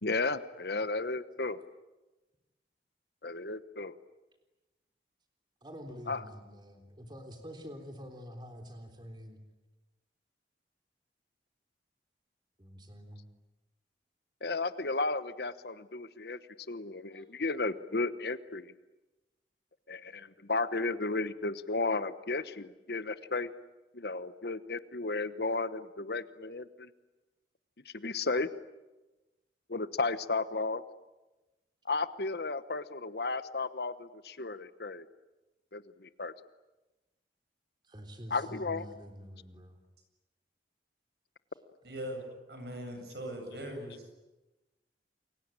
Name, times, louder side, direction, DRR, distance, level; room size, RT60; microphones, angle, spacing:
voice 1, 0.0-1.6 3.2-3.9 6.1-6.2 14.4-16.4 16.7-18.7 19.9-23.5 23.9-26.9 27.8-28.5 29.7-30.8 31.8-35.1 35.7-36.3 38.3-38.9, left 3 dB, 65° left, 13 dB, 1.2 m, -34 dB
voice 2, 5.6-9.4 12.6-13.2 17.1-17.2 37.8-39.8, equal, 25° right, 4 dB, 3.5 m, -47 dB
voice 3, 41.8-42.2 42.5-44.0, right 1 dB, 70° right, 5 dB, 7.8 m, -40 dB
28.5 x 23.0 x 8.9 m, 1.1 s
head